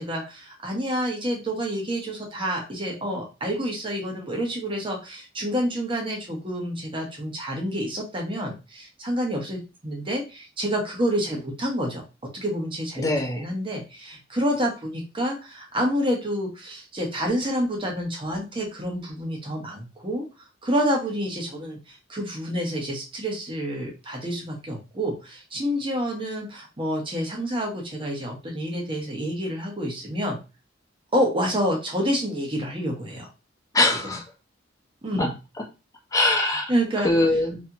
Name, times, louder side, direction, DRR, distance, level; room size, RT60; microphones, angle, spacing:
voice 1, 0.0-12.0 12.3-20.2 20.6-30.4 31.1-33.3 34.0-34.2 35.0-35.3 36.7-37.1, equal, 25° right, 0 dB, 1.3 m, -28 dB
voice 2, 13.0-13.4 33.7-34.2 35.2-35.3 36.1-36.7 37.0-37.6, left 2 dB, 20° left, 0 dB, 1.1 m, -22 dB
4.4 x 3.3 x 2.8 m, 0.29 s
head